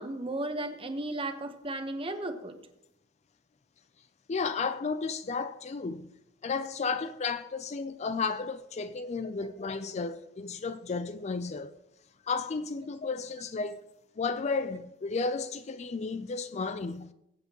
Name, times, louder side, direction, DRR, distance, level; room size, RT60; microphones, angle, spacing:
voice 1, 0.0-2.6 9.4-9.5, right 2 dB, 30° right, 1.0 m, -35 dB
voice 2, 4.3-6.1 6.4-11.7 12.3-13.8 14.2-17.1, left 4 dB, 35° left, 0.4 m, -33 dB
22.5 x 8.1 x 3.0 m
head